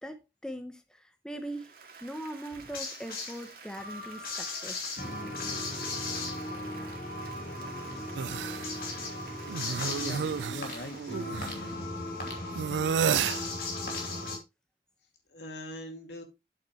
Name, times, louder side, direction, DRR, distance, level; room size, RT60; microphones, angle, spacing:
voice 1, 0.0-4.9, right 1 dB, 5° left, 0.7 m, -41 dB
Applause, 1.3-13.0, right 5 dB, 55° right, 2.0 m, -52 dB
sound 1, 2.5-3.5 3.8-14.4, left 2 dB, 55° left, 2.9 m, -37 dB
sound 2, 8.2-8.7 9.5-11.6 12.6-13.4, right 7 dB, 90° right, 0.4 m, -31 dB
voice 2, 10.0-11.2 15.3-16.2, left 1 dB, 80° left, 2.4 m, -42 dB
9.1 x 7.5 x 3.1 m
head